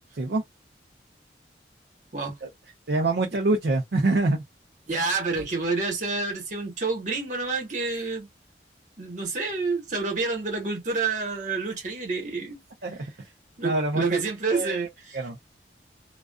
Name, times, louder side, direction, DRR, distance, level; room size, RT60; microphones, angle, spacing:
voice 1, 2.9-4.4 12.8-13.0 13.6-14.2 14.5-15.4, right 2 dB, 65° right, 0.5 m, -25 dB
voice 2, 4.9-8.3 9.0-12.6 13.6-15.2, right 4 dB, 45° right, 1.1 m, -28 dB
2.4 x 2.3 x 2.3 m
head